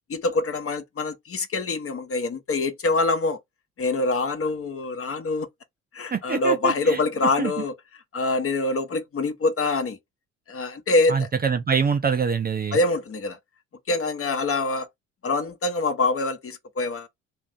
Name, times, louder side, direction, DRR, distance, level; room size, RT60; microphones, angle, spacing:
voice 1, 0.1-3.4 3.8-5.5 5.9-7.8 8.1-10.0 10.5-11.3 12.7-13.4 13.9-14.9 15.2-17.1, left 2 dB, 35° left, 0.9 m, -25 dB
voice 2, 6.1-7.0 7.4-7.5 11.1-12.8, right 6 dB, 25° right, 0.5 m, -25 dB
2.7 x 2.5 x 3.3 m
hypercardioid pair, 60°, 38 cm